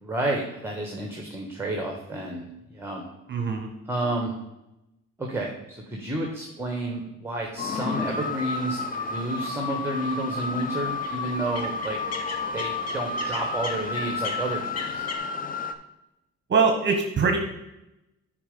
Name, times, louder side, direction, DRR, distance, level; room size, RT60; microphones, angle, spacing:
voice 1, 0.0-3.1 3.8-4.3 5.2-12.0 12.5-15.0, right 1 dB, 10° right, 1 dB, 1.3 m, -31 dB
voice 2, 3.3-3.7 16.5-17.4, right 5 dB, 35° right, 4 dB, 1.1 m, -22 dB
sound 1, 7.6-15.7, left 3 dB, 30° left, 0.7 m, -31 dB
sound 2, 7.7-15.2, left 3 dB, 55° left, 1.4 m, -40 dB
8.6 x 4.9 x 5.3 m, 0.90 s
cardioid pair, 90°, 30 cm